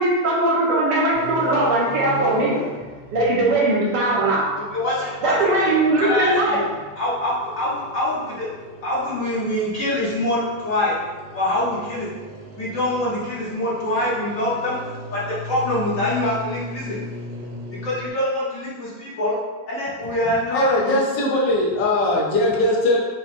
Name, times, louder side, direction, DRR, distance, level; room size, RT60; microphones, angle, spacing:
voice 1, 0.0-2.6 3.1-4.5 5.2-6.6, right 2 dB, 75° right, -5 dB, 1.5 m, -20 dB
sound 1, 1.1-18.1, left 1 dB, 55° right, 0.8 m, -38 dB
voice 2, 4.7-5.6 6.0-6.6 6.9-8.5 8.8-11.0 11.3-12.1 12.6-14.8 15.1-17.0 17.7-19.4 19.7-21.0, left 1 dB, 55° left, -8 dB, 1.2 m, -24 dB
voice 3, 20.3-23.0, left 1 dB, 80° left, -4 dB, 1.4 m, -20 dB
5.6 x 2.1 x 2.5 m, 1.3 s
omnidirectional pair, 2.0 m